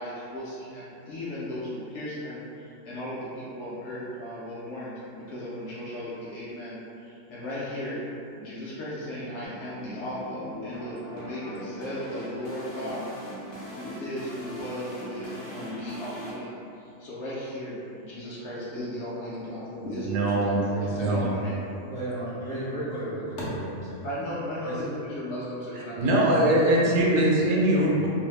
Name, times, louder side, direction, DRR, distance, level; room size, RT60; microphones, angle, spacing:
voice 1, 0.0-8.1 8.3-13.1 13.8-21.6 23.4-23.5 24.0-26.4 26.6-27.1, equal, 70° left, -8 dB, 0.8 m, -36 dB
sound 1, 9.4-16.3, equal, 40° left, 0.4 m, -40 dB
voice 2, 19.8-20.6 20.9-21.3 26.0-28.1, right 1 dB, 80° right, -3 dB, 0.9 m, -22 dB
voice 3, 20.8-21.2 21.9-24.0 24.6-24.9 27.4-27.5, right 1 dB, 55° right, -9 dB, 0.5 m, -34 dB
2.6 x 2.0 x 3.1 m, 2.7 s
omnidirectional pair, 1.3 m